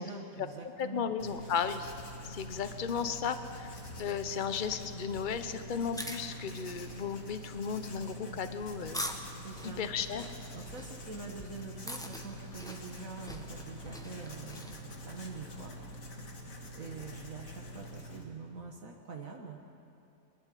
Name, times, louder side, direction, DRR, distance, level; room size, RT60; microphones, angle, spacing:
voice 1, 0.0-1.0 9.4-9.9 10.5-15.7 16.7-19.6, right 4 dB, 70° right, 1 dB, 1.8 m, -45 dB
voice 2, 0.8-1.9 2.2-3.7 4.0-9.0 9.6-10.2, left 6 dB, 40° left, 10 dB, 1.0 m, -35 dB
Writing, 1.2-18.2, equal, 70° left, 2.3 m, -46 dB
sound 1, 5.9-14.8, equal, 5° left, 1.1 m, -45 dB
23.5 x 12.5 x 10.0 m, 2.9 s
omnidirectional pair, 1.5 m